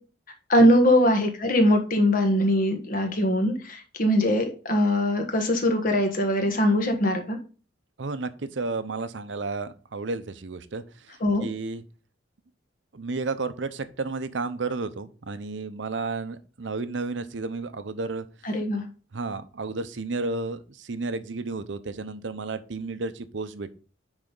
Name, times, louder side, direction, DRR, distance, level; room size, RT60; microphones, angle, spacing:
voice 1, 0.5-7.4 11.2-11.4 18.4-18.8, equal, 50° left, 5 dB, 1.4 m, -22 dB
voice 2, 8.0-10.8 11.4-11.8 12.9-18.3 19.1-23.7, right 3 dB, 75° right, 12 dB, 0.7 m, -32 dB
9.7 x 4.1 x 3.9 m, 0.36 s
head